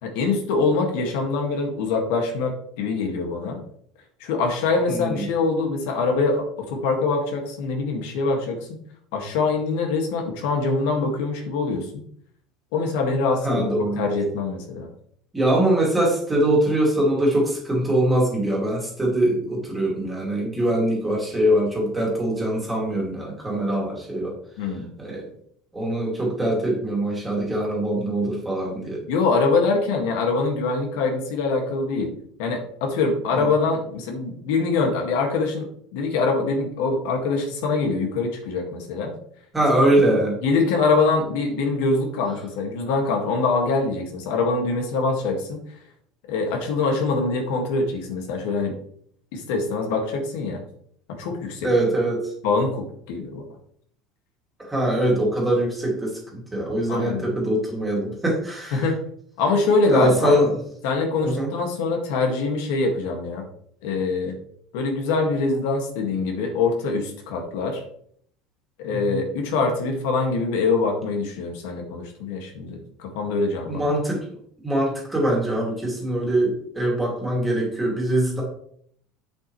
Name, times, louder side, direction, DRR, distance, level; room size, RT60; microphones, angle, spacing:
voice 1, 0.0-3.6 4.2-8.6 9.1-12.0 12.7-14.9 24.6-24.9 29.1-32.1 32.4-39.1 40.1-45.6 46.3-48.8 49.3-50.6 51.1-51.7 52.4-53.4 56.9-57.3 58.7-59.0 59.4-60.4 60.8-63.5 63.8-64.4 64.7-67.8 68.8-73.9, left 3 dB, 70° left, 3 dB, 1.9 m, -24 dB
voice 2, 4.9-5.2 13.4-14.0 15.3-24.3 25.0-25.2 25.7-29.0 33.3-33.5 39.5-40.3 51.6-52.2 54.7-58.8 59.9-60.5 61.2-61.5 68.9-69.2 73.7-74.2 74.6-78.4, right 1 dB, 5° right, -3 dB, 2.5 m, -23 dB
8.0 x 7.9 x 3.2 m, 0.64 s
cardioid pair, 175°, 0 cm